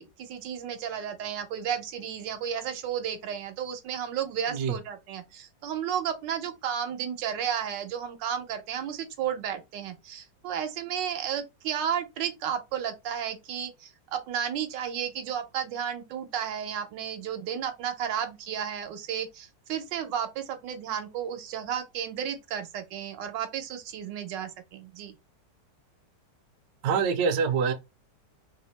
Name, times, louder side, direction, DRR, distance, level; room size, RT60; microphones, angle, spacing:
voice 1, 0.0-25.2, right 8 dB, 90° right, 1.3 m, -33 dB
voice 2, 26.8-27.7, right 6 dB, 70° right, 1.0 m, -25 dB
3.3 x 2.8 x 3.1 m
omnidirectional pair, 1.9 m